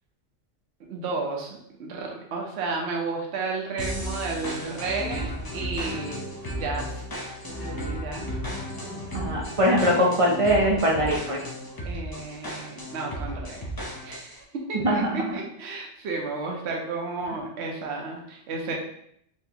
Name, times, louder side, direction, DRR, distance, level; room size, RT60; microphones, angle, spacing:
voice 1, 0.9-6.9 7.6-8.2 11.8-13.7 14.0-18.7, right 3 dB, 65° right, 0 dB, 1.0 m, -32 dB
sound 1, 3.8-14.4, equal, 30° left, 0.4 m, -34 dB
voice 2, 9.1-11.4 14.7-15.2, equal, 35° right, -2 dB, 0.6 m, -22 dB
4.4 x 2.9 x 2.8 m, 0.71 s
omnidirectional pair, 1.3 m